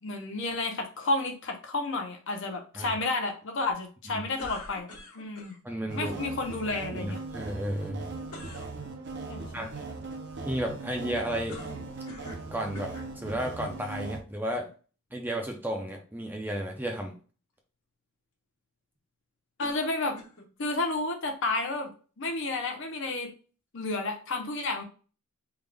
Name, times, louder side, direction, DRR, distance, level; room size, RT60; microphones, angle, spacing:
voice 1, 0.0-4.9 5.1-5.5 5.9-7.2 9.3-9.6 19.6-20.2 20.6-21.9 22.2-23.3 23.7-24.8, left 2 dB, 60° left, 4 dB, 0.8 m, -31 dB
sound 1, 4.4-5.6 8.3-8.7 11.5-12.5 12.7-13.1 13.9-14.0 19.6-20.5, left 2 dB, 85° left, 1.2 m, -44 dB
voice 2, 5.6-6.1 6.9-8.0 9.5-9.7 10.5-11.6 12.5-14.7 15.1-17.2, right 1 dB, 10° right, 2 dB, 0.5 m, -33 dB
sound 2, 5.9-14.2, right 3 dB, 50° right, 0.7 m, -39 dB
3.5 x 2.4 x 3.3 m, 0.36 s
head